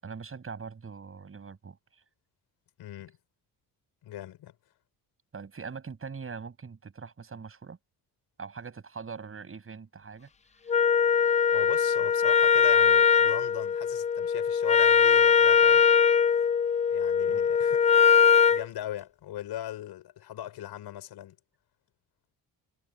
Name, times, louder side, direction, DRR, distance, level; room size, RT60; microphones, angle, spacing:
voice 1, 0.0-1.8 5.3-7.8 8.4-10.3 17.2-17.4, right 5 dB, 35° right, 7.7 m, -42 dB
voice 2, 2.8-3.2 4.0-4.6 11.5-15.8 16.9-17.9 18.5-21.4, left 12 dB, 75° left, 7.3 m, -39 dB
Wind instrument woodwind instrument, 10.7-18.7, left 7 dB, 20° left, 0.4 m, -21 dB
cardioid pair, 100°, 39 cm